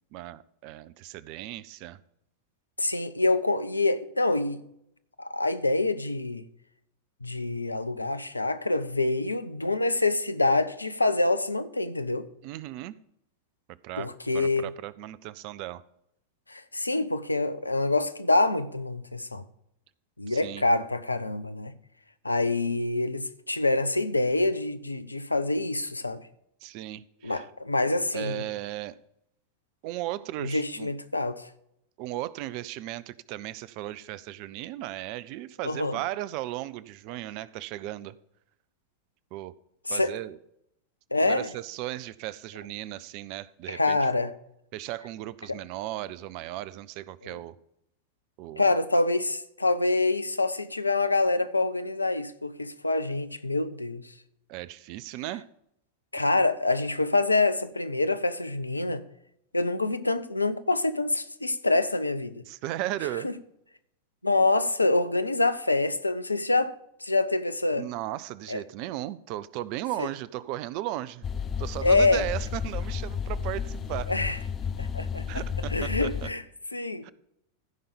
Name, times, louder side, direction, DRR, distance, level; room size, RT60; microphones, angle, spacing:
voice 1, 0.1-2.0 12.4-13.0 13.8-15.8 20.3-20.7 26.6-27.5 28.1-29.0 29.8-30.9 32.0-38.2 39.3-39.5 39.9-40.4 41.2-44.0 44.7-47.6 48.4-48.8 54.5-55.4 62.5-63.3 67.8-71.2 71.6-74.1 75.3-76.3 77.0-77.1, right 15 dB, 45° right, 0.5 m, -36 dB
voice 2, 2.8-4.6 5.2-6.4 7.2-12.3 14.0-14.7 16.5-19.4 20.2-21.7 22.2-26.2 27.2-28.5 30.4-31.5 35.6-36.0 39.9-40.1 41.1-41.5 43.7-44.3 45.5-45.6 47.2-47.4 48.6-54.0 56.1-59.0 59.5-62.4 63.2-63.3 64.2-66.7 67.0-67.9 68.5-68.6 70.0-70.1 71.8-72.2 74.1-74.4 74.8-75.4 75.7-76.4 76.7-77.1, left 2 dB, 85° left, 0.6 m, -26 dB
sound 1, 71.2-76.3, left 6 dB, 25° left, 0.8 m, -32 dB
14.5 x 5.4 x 5.3 m
figure-of-eight pair, 90°, 0 cm